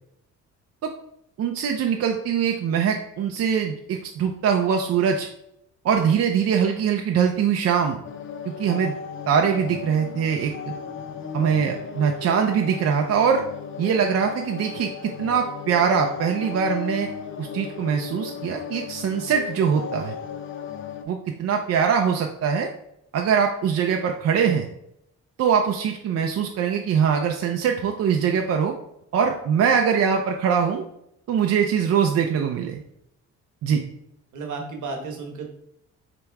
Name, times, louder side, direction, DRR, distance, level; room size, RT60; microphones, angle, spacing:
voice 1, 1.4-5.3 5.8-8.0 8.6-8.9 9.3-10.7 11.3-13.4 13.8-17.1 17.4-20.1 21.1-22.7 23.1-24.7 25.4-28.7 29.1-30.8 31.3-32.8 33.6-33.8, right 7 dB, 55° right, 2 dB, 0.5 m, -22 dB
sound 1, 8.0-21.0, left 6 dB, 45° left, 0.5 m, -35 dB
voice 2, 34.3-35.5, right 4 dB, 75° right, 2 dB, 1.2 m, -33 dB
3.5 x 3.0 x 4.5 m, 0.77 s
cardioid pair, 90°, 30 cm